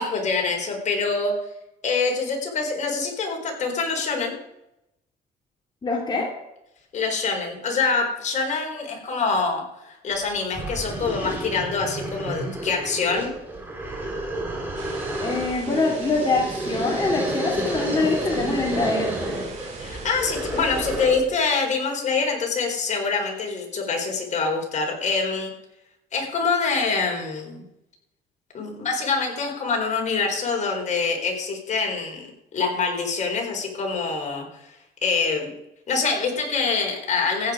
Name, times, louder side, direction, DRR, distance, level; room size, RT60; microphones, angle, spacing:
voice 1, 0.0-1.3 1.8-4.4 6.9-13.3 19.8-25.5 26.1-27.6 28.5-32.3 32.5-34.4 35.0-35.5 35.9-37.5, left 4 dB, 45° left, 1 dB, 4.2 m, -25 dB
voice 2, 5.8-6.3 15.2-19.1, left 3 dB, 25° left, -2 dB, 2.9 m, -24 dB
sound 1, 10.1-10.2 10.5-21.3, right 1 dB, 10° right, 3.9 m, -30 dB
sound 2, 14.7-21.1, right 3 dB, 50° right, 6.6 m, -40 dB
15.0 x 9.6 x 5.0 m, 0.85 s
cardioid pair, 110°, 17 cm